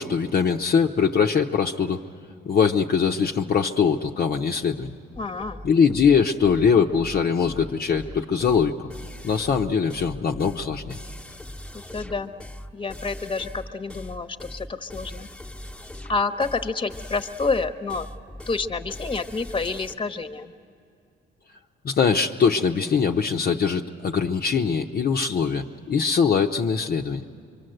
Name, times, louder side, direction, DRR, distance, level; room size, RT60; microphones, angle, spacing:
voice 1, 0.0-2.0 2.5-4.9 5.6-8.7 9.2-11.0 21.8-27.2, left 6 dB, 50° left, 1 dB, 0.9 m, -22 dB
sound 1, 5.1-19.9, left 1 dB, 5° left, 1.2 m, -40 dB
voice 2, 5.2-5.6 11.7-12.3 12.7-15.3 16.1-18.1 18.5-20.5, left 4 dB, 25° left, 9 dB, 1.2 m, -28 dB
25.5 x 24.0 x 7.9 m, 2.4 s
cardioid pair, 90°, 20 cm